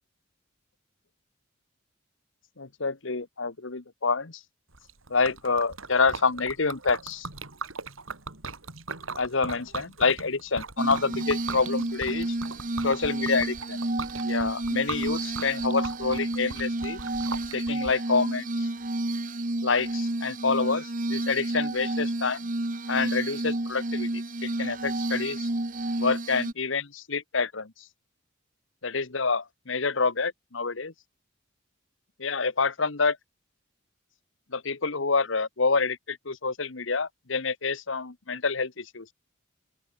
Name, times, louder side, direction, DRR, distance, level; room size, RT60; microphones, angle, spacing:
voice 1, 2.6-4.4 5.1-7.3 9.1-12.4 12.8-13.8 14.2-17.0 17.5-18.7 19.6-22.4 22.9-25.5 26.0-27.7 28.8-30.9 32.2-33.2 34.5-39.1, left 4 dB, 70° left, 1.3 m, -27 dB
Liquid, 4.7-17.9, right 4 dB, 85° right, 4.2 m, -39 dB
Glass, 10.8-26.5, right 1 dB, 40° right, 1.4 m, -30 dB
open air
head